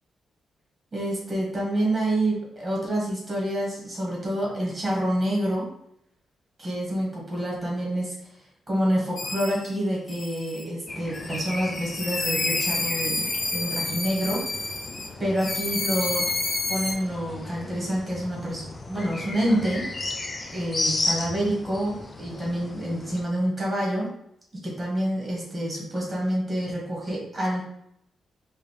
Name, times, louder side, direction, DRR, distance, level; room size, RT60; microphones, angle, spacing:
voice 1, 0.9-5.7 6.6-8.1 8.7-14.6 15.2-16.3 16.7-19.9 20.5-24.1 24.6-27.6, right 1 dB, 15° right, -3 dB, 1.5 m, -27 dB
sound 1, 9.2-9.7 10.1-10.6 11.1-15.1 15.4-16.9, left 2 dB, 40° left, 0.8 m, -29 dB
sound 2, 10.9-23.2, left 2 dB, 20° left, 0.4 m, -35 dB
5.1 x 2.6 x 3.2 m, 0.74 s
wide cardioid pair, 160°, 0 cm